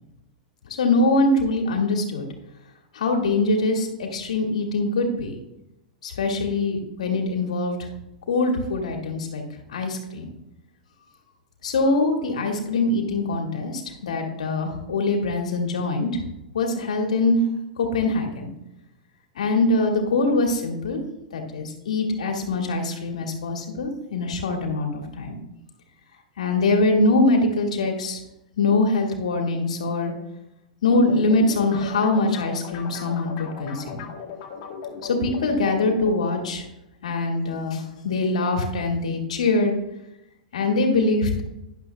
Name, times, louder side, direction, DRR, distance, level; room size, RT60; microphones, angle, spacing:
voice 1, 0.7-2.3 2.9-5.4 6.0-7.8 8.3-9.4 9.7-10.3 11.6-16.1 16.5-17.4 17.8-18.5 19.4-21.0 21.3-25.4 26.4-28.2 28.6-30.1 30.8-34.0 35.0-36.6 37.0-39.7 40.5-41.4, left 2 dB, 65° left, 2 dB, 2.0 m, -23 dB
sound 1, 31.0-36.1, left 6 dB, 50° left, 1.7 m, -38 dB
12.0 x 10.5 x 2.3 m, 0.89 s
figure-of-eight pair, 100°, 4 cm